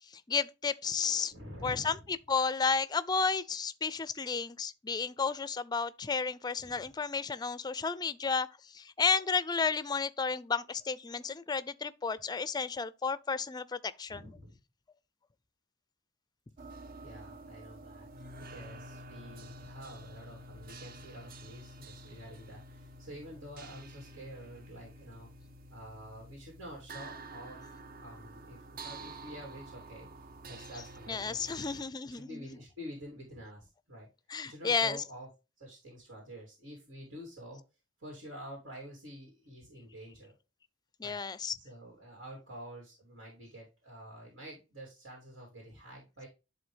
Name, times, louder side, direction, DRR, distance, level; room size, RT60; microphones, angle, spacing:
voice 1, 0.1-1.3 1.6-8.5 8.7-14.3 31.1-32.6 34.3-35.0 41.0-41.6, left 5 dB, 20° left, 0.4 m, -32 dB
voice 2, 1.3-2.1 6.6-6.9 14.1-14.6 17.0-18.1 18.5-25.3 25.7-27.7 28.0-30.1 30.4-31.7 32.0-34.1 34.4-35.3 35.6-37.6 38.0-40.3 41.0-41.2 41.6-46.3, equal, 85° right, 3.2 m, -48 dB
sound 1, 16.6-31.8, right 2 dB, 50° right, 0.6 m, -49 dB
11.0 x 3.8 x 3.4 m
head